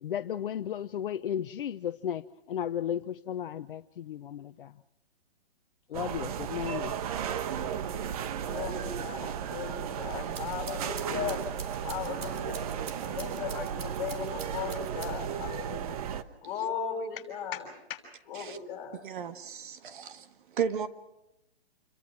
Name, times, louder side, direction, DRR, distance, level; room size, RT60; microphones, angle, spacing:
voice 1, 0.0-2.2 2.5-4.7 5.9-6.9, left 9 dB, 60° left, 10 dB, 0.9 m, -34 dB
sound 1, 5.9-16.2, right 8 dB, 35° right, 1.2 m, -35 dB
voice 2, 8.5-11.4 11.8-12.6 13.1-16.0 16.4-18.0 18.2-19.0, left 7 dB, 35° left, 3 dB, 6.4 m, -37 dB
sound 2, 10.3-15.4, right 5 dB, 70° right, 3.7 m, -46 dB
voice 3, 18.9-20.3 20.5-20.9, right 8 dB, 50° right, 9 dB, 1.7 m, -34 dB
29.0 x 22.5 x 6.2 m, 0.86 s
hypercardioid pair, 150°, 31 cm